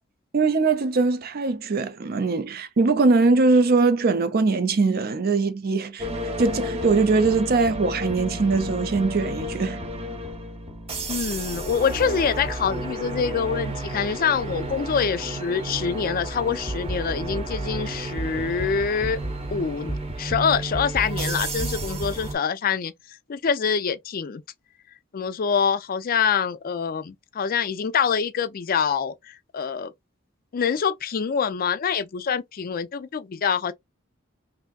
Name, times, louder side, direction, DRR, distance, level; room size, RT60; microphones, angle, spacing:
voice 1, 0.3-6.1 6.4-9.8, right 3 dB, 50° right, 0.5 m, -21 dB
sound 1, 6.0-22.3, right 1 dB, 30° right, 0.8 m, -31 dB
voice 2, 11.1-19.2 19.5-22.9 23.3-24.4 25.1-29.9 30.5-33.7, left 6 dB, 45° left, 0.4 m, -25 dB
3.4 x 2.6 x 2.3 m
head